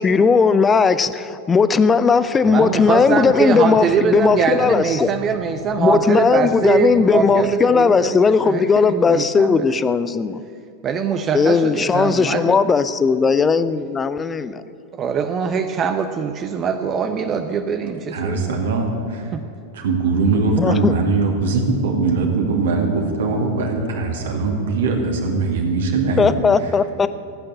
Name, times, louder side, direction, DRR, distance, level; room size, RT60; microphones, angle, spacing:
voice 1, 0.0-5.1 5.8-10.4 11.3-14.6 20.3-20.9 26.2-27.1, left 5 dB, 15° left, 14 dB, 0.6 m, -17 dB
voice 2, 2.4-9.8 10.8-12.6 15.0-18.6 19.3-19.4, right 6 dB, 30° right, 7 dB, 0.8 m, -22 dB
sound 1, 2.4-7.5, right 3 dB, 85° right, 2.2 m, -35 dB
voice 3, 18.1-19.3 19.7-26.4, right 3 dB, 60° right, 1 dB, 2.4 m, -21 dB
15.0 x 8.9 x 8.8 m, 2.6 s
figure-of-eight pair, 90°, 0 cm